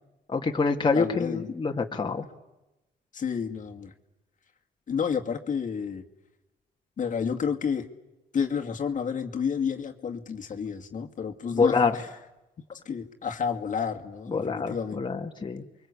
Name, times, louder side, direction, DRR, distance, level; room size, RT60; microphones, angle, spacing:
voice 1, 0.3-2.3 11.5-11.9 14.3-15.6, left 4 dB, 25° left, 2 dB, 2.1 m, -26 dB
voice 2, 0.9-1.5 3.1-3.9 4.9-6.0 7.0-7.9 8.3-12.0 12.7-15.0, left 6 dB, 50° left, 3 dB, 2.2 m, -30 dB
29.5 x 23.5 x 8.4 m, 0.99 s
cardioid pair, 100°, 17 cm